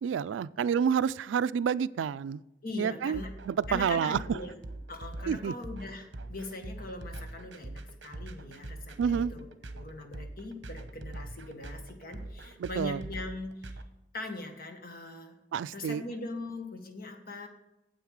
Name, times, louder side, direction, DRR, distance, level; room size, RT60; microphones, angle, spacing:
voice 1, 0.0-2.4 2.8-3.2 3.4-4.4 5.3-5.5 9.0-9.3 12.6-13.0 15.5-16.0, right 7 dB, 85° right, 0.3 m, -29 dB
voice 2, 2.6-3.3 3.7-4.6 4.9-13.8 14.1-15.4 15.7-17.5, left 2 dB, 55° left, 1.4 m, -41 dB
sound 1, 3.1-13.8, right 2 dB, 70° right, 0.9 m, -43 dB
9.4 x 7.9 x 4.8 m
head